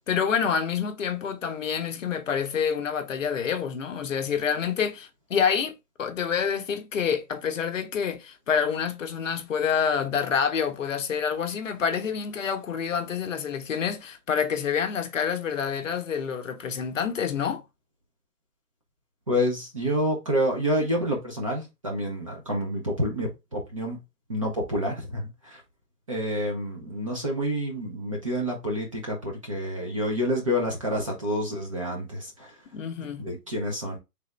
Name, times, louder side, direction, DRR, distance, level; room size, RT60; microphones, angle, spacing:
voice 1, 0.1-17.6 32.7-33.3, left 7 dB, 55° left, 0.8 m, -27 dB
voice 2, 19.3-24.0 24.3-25.6 26.1-32.6 33.0-34.0, equal, 25° right, 0.6 m, -28 dB
3.7 x 3.4 x 3.0 m
hypercardioid pair, 160°, 46 cm